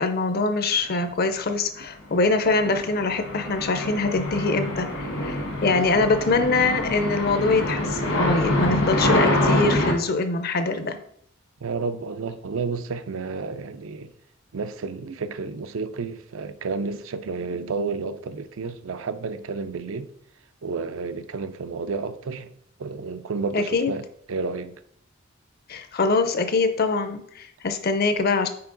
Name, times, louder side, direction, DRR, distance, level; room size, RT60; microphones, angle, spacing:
voice 1, 0.0-11.0 23.5-23.9 25.7-28.5, left 3 dB, 50° left, 0.6 m, -23 dB
sound 1, 2.1-9.9, left 1 dB, 70° left, 1.5 m, -26 dB
voice 2, 5.7-6.1 11.6-14.1 14.5-20.1 20.6-22.5 22.8-24.8, right 4 dB, 75° right, 0.5 m, -31 dB
5.7 x 4.5 x 3.8 m
head